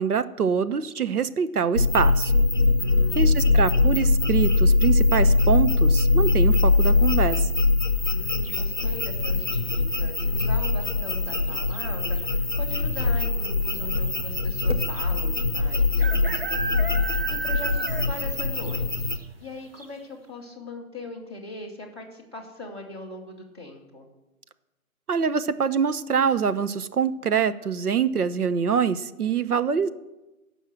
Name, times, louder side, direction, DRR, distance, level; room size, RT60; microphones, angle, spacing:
voice 1, 0.0-2.3 3.1-7.5 25.1-29.9, right 6 dB, 80° right, 13 dB, 0.9 m, -25 dB
sound 1, 1.8-19.2, left 3 dB, 35° left, 0.6 m, -22 dB
voice 2, 2.8-3.5 8.1-16.6 16.9-19.1 19.4-24.1, left 2 dB, 20° right, -4 dB, 1.1 m, -41 dB
sound 2, 8.4-8.9 10.7-11.1 11.4-11.5 11.7-12.2 13.0-13.1 13.3-13.4 15.0-15.1 16.0-18.3 18.6-18.7 19.2-19.3 19.8-19.9, right 4 dB, 40° right, 0.7 m, -32 dB
14.5 x 5.5 x 7.5 m, 1.0 s
hypercardioid pair, 180°, 44 cm